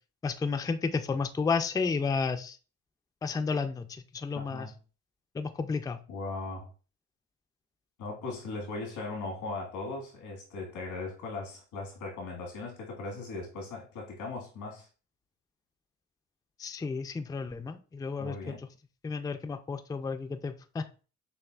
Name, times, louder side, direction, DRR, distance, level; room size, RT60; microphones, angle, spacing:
voice 1, 0.2-2.6 3.2-4.7 5.3-6.0 16.6-18.7 19.0-20.8, left 4 dB, 15° left, 8 dB, 0.4 m, -32 dB
voice 2, 4.3-4.8 6.1-6.7 8.0-14.9 18.2-18.6, left 3 dB, 90° left, 1 dB, 1.7 m, -38 dB
6.5 x 2.4 x 2.4 m, 0.35 s
cardioid pair, 90°, 30 cm